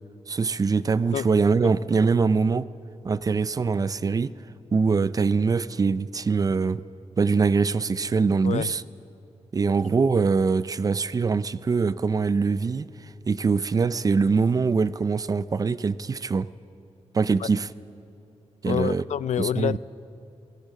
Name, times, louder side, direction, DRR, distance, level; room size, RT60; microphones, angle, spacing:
voice 1, 0.3-2.7 3.0-4.3 4.7-6.8 7.2-8.8 9.5-12.9 13.3-16.5 17.1-17.7 18.6-19.0 19.4-19.8, right 4 dB, 30° right, 0.4 m, -23 dB
voice 2, 18.6-19.8, left 9 dB, 90° left, 0.4 m, -27 dB
22.0 x 17.0 x 7.5 m
wide cardioid pair, 155°, 12 cm